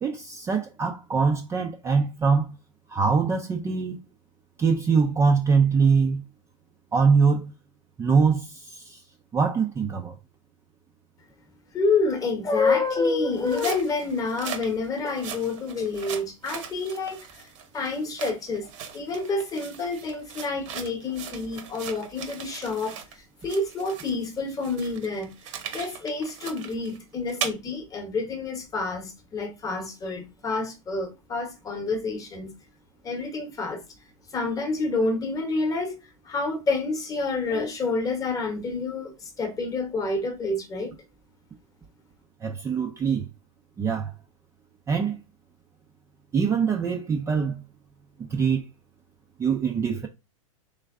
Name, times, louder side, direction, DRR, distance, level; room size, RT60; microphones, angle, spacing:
voice 1, 0.0-2.5 2.9-4.0 4.6-6.2 6.9-7.5 8.0-9.0 9.3-10.1 42.4-43.3 43.8-44.1 44.9-45.2 46.3-47.6 48.2-48.6 49.4-50.1, right 5 dB, 15° right, 0.5 m, -23 dB
voice 2, 11.7-18.7 18.9-23.0 23.4-25.3 25.7-32.5 33.0-33.8 34.3-36.0 36.2-40.9, left 3 dB, 20° left, 1.0 m, -28 dB
sound 1, 13.3-23.2 23.4-27.5, right 8 dB, 60° right, 1.1 m, -39 dB
3.5 x 3.1 x 3.5 m
hypercardioid pair, 130°, 18 cm